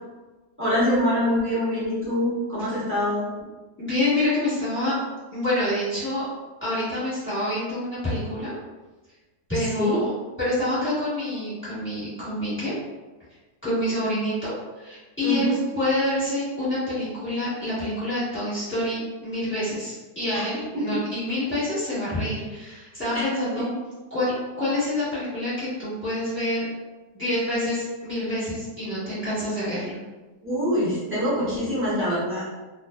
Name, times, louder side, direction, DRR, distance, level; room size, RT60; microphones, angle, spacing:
voice 1, 0.6-3.3 9.8-10.0 15.2-15.6 20.3-20.4 23.1-23.2 30.4-32.4, left 1 dB, 10° right, -11 dB, 0.6 m, -24 dB
voice 2, 3.8-4.9 5.3-6.3 6.6-8.5 9.5-10.1 10.4-12.7 13.6-23.7 24.1-26.7 27.1-30.0, left 1 dB, 10° left, -12 dB, 1.2 m, -27 dB
2.4 x 2.4 x 2.3 m, 1.2 s
omnidirectional pair, 1.7 m